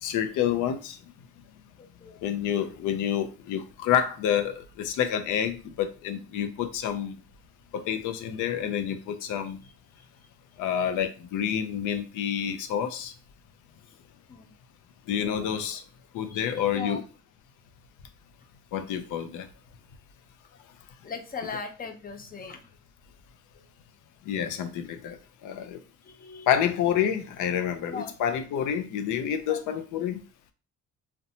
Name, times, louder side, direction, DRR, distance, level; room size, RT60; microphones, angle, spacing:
voice 1, 0.0-1.0 2.2-7.2 7.7-9.6 10.6-13.1 15.1-15.8 16.1-17.0 18.7-19.5 24.3-25.2 25.4-25.8 26.5-30.2, left 9 dB, 85° left, 0.5 m, -28 dB
voice 2, 1.8-2.2 9.6-10.1 13.7-14.0 14.3-14.5 16.2-17.0 21.0-22.6 24.2-24.4 26.0-26.5 27.8-28.1 29.5-29.6, left 5 dB, 30° left, 0.5 m, -40 dB
2.6 x 2.2 x 2.7 m
cardioid pair, 90°, 30 cm